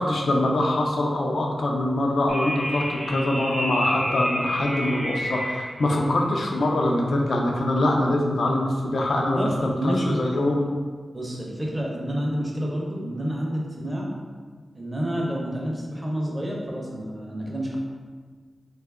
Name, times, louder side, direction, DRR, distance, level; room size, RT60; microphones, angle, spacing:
voice 1, 0.0-10.6, left 1 dB, 75° left, 0 dB, 0.4 m, -24 dB
sound 1, 2.3-5.8, equal, 55° right, 0.7 m, -30 dB
voice 2, 9.3-10.2 11.1-14.1 14.7-17.8, equal, 15° right, -2 dB, 0.6 m, -29 dB
2.7 x 2.3 x 3.5 m, 1.5 s
wide cardioid pair, 120°, 0 cm